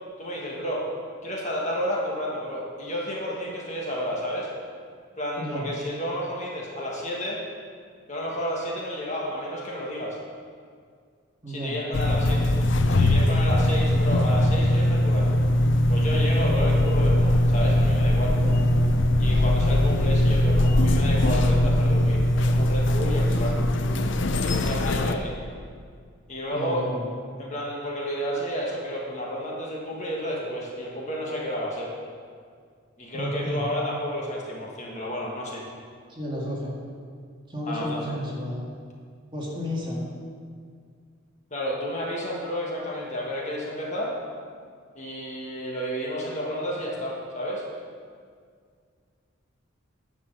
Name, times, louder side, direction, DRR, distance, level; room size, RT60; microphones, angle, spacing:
voice 1, 0.2-0.9 1.2-4.5 5.2-7.4 8.1-10.2 11.5-12.5 12.9-15.4 15.9-18.4 19.2-23.6 24.4-25.4 26.3-26.8 27.4-31.9 33.0-35.6 37.7-38.1 41.5-44.2 44.9-47.6, equal, 35° left, -3 dB, 1.5 m, -31 dB
voice 2, 5.4-5.7 11.4-11.8 18.3-19.1 23.4-23.7 26.5-27.1 33.1-33.7 36.1-36.7 37.5-38.6 39.3-40.1, equal, 25° right, -4 dB, 1.8 m, -32 dB
sound 1, 11.9-25.2, left 1 dB, 60° left, 0.5 m, -21 dB
10.0 x 5.2 x 6.6 m, 2.1 s
head